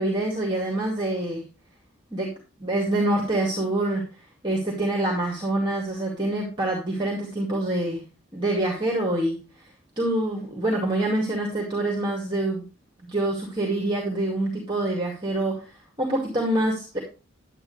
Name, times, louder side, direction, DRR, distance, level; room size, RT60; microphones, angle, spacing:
voice 1, 0.0-1.4 2.1-2.3 2.6-4.0 4.4-8.0 8.3-9.4 10.0-12.6 13.0-15.7 16.0-17.0, right 1 dB, 20° right, -1 dB, 2.2 m, -26 dB
10.5 x 9.5 x 3.2 m, 0.32 s
head